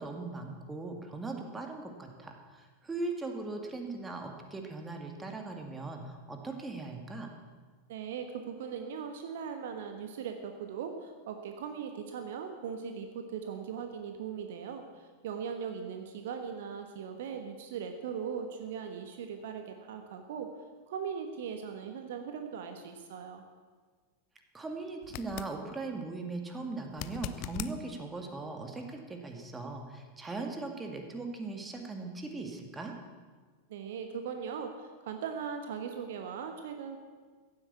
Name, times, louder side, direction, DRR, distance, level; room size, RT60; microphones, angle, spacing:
voice 1, 0.0-7.3 24.5-32.9, right 3 dB, 10° right, 3 dB, 2.0 m, -39 dB
voice 2, 7.9-20.5 20.9-23.4 33.7-37.0, right 7 dB, 55° right, 6 dB, 1.3 m, -39 dB
sound 1, 25.0-25.6 26.9-27.8 30.8-30.9, left 13 dB, 40° left, 0.6 m, -40 dB
15.5 x 8.2 x 8.4 m, 1.5 s
figure-of-eight pair, 90°, 0 cm